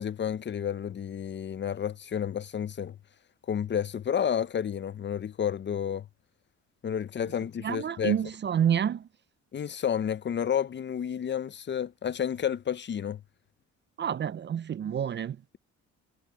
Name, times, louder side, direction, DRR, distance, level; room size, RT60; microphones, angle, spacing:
voice 1, 0.0-3.0 3.5-6.1 6.8-8.2 9.5-13.2, left 8 dB, 40° left, 0.6 m, -31 dB
voice 2, 7.6-9.1 14.0-15.4, right 8 dB, 35° right, 0.5 m, -28 dB
cardioid pair, 90°, 30 cm